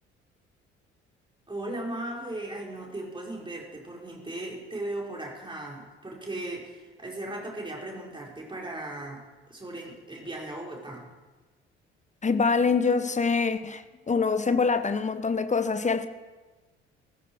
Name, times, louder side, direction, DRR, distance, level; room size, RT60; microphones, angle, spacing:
voice 1, 1.5-9.2 9.5-11.1, right 1 dB, 15° right, 5.0 m, -37 dB
voice 2, 12.2-16.1, left 4 dB, 20° left, 1.2 m, -25 dB
16.5 x 15.0 x 4.7 m
figure-of-eight pair, 50°, 32 cm